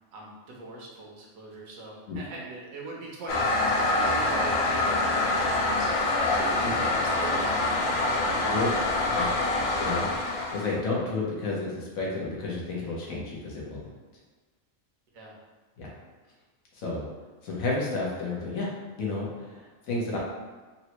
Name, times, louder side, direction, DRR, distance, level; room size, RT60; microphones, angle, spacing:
voice 1, 0.1-8.4 9.1-9.3 15.1-15.4, right 2 dB, 85° right, -2 dB, 1.2 m, -42 dB
Toilet flush, 3.3-10.8, left 2 dB, 65° left, 0.7 m, -25 dB
voice 2, 9.8-10.1 10.5-13.9 15.8-15.9 16.7-17.0 17.4-18.7 19.0-20.2, left 3 dB, 85° left, -5 dB, 1.3 m, -31 dB
4.0 x 2.1 x 2.9 m, 1.3 s
omnidirectional pair, 1.4 m